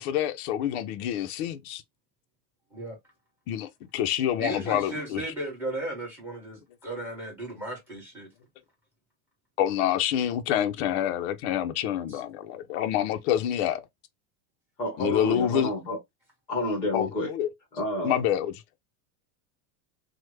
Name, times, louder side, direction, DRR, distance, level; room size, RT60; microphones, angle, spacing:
voice 1, 0.0-1.8 3.5-5.2 9.6-13.8 15.0-15.7 16.9-17.5 18.0-18.6, left 11 dB, 50° left, 0.5 m, -27 dB
voice 2, 4.4-8.3 12.1-12.2, right 2 dB, 5° right, 1.5 m, -36 dB
voice 3, 14.8-16.0 16.5-17.3 17.7-18.2, left 1 dB, 10° left, 0.9 m, -29 dB
3.1 x 2.1 x 3.1 m
supercardioid pair, 175°, 43 cm